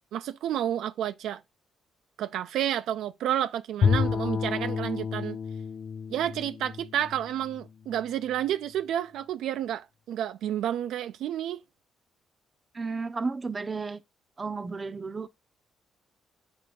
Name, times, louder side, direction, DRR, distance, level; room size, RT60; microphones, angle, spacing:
voice 1, 0.1-1.4 2.2-5.4 6.1-11.6, right 11 dB, 80° right, 0.4 m, -30 dB
Bowed string instrument, 3.8-8.1, left 6 dB, 50° left, 0.4 m, -30 dB
voice 2, 12.7-14.0 14.4-15.3, right 4 dB, 30° right, 0.7 m, -33 dB
7.8 x 3.3 x 5.3 m
cardioid pair, 90°, 0 cm